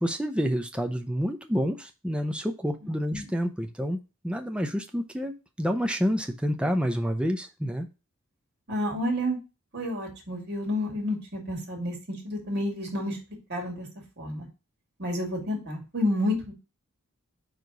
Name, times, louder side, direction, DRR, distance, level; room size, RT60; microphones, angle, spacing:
voice 1, 0.0-7.9, equal, 5° right, 5 dB, 0.6 m, -28 dB
voice 2, 2.8-3.3 8.7-9.4 9.7-13.2 13.5-13.9 14.2-14.5 15.0-16.5, left 1 dB, 50° right, -1 dB, 2.6 m, -30 dB
4.8 x 4.0 x 5.0 m, 0.29 s
head